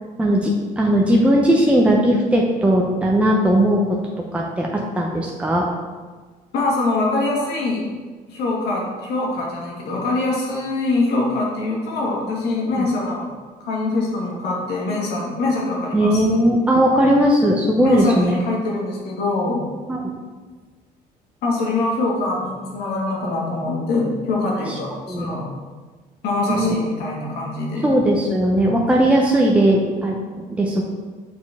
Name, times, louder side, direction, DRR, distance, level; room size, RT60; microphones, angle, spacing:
voice 1, 0.2-4.0 4.3-5.7 12.7-12.9 15.9-18.4 19.9-20.1 24.7-24.8 25.1-25.3 26.5-26.7 27.8-30.8, right 1 dB, 5° right, -1 dB, 0.7 m, -18 dB
voice 2, 6.5-7.9 8.3-13.3 13.6-16.4 17.8-19.6 21.4-25.5 26.2-27.9, left 2 dB, 75° left, -3 dB, 1.8 m, -23 dB
6.8 x 4.5 x 3.5 m, 1.4 s
cardioid pair, 110°, 17 cm